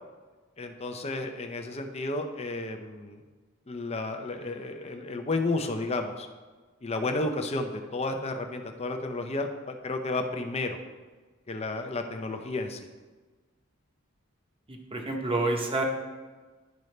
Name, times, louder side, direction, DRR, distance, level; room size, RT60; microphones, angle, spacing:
voice 1, 0.6-3.2 3.7-6.3 6.8-10.8 11.5-12.8, left 2 dB, 30° left, 5 dB, 0.7 m, -32 dB
voice 2, 14.7-15.8, right 2 dB, 25° right, 2 dB, 1.0 m, -28 dB
10.5 x 5.3 x 3.3 m, 1.3 s
head